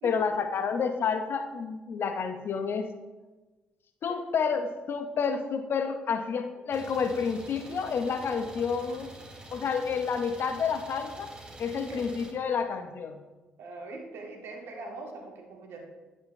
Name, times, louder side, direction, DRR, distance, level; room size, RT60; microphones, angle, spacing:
voice 1, 0.0-2.9 4.0-9.1 9.5-11.3 11.6-13.2, left 6 dB, 50° left, 8 dB, 0.9 m, -29 dB
Idling, 6.7-12.3, right 1 dB, 20° right, 2.7 m, -47 dB
voice 2, 11.7-12.1 13.6-15.9, right 3 dB, 60° right, 1 dB, 2.1 m, -42 dB
11.5 x 8.8 x 3.2 m, 1.2 s
figure-of-eight pair, 45°, 5 cm